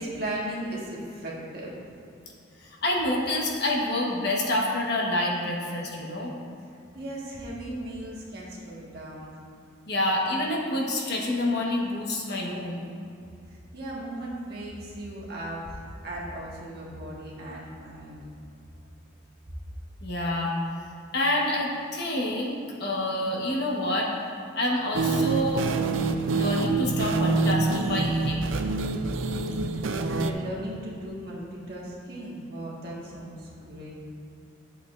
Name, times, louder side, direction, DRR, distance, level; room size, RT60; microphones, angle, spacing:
voice 1, 0.0-1.7 6.9-9.4 13.7-18.2 29.7-29.8 30.1-33.9, right 1 dB, 50° right, -5 dB, 1.7 m, -37 dB
voice 2, 2.6-6.3 9.9-12.8 20.0-20.5 21.1-24.1 24.6-25.6 26.3-28.5, left 1 dB, 55° left, -2 dB, 1.3 m, -27 dB
sound 1, 24.9-30.3, right 3 dB, 80° right, 0.5 m, -26 dB
11.5 x 7.9 x 2.6 m, 2.4 s
head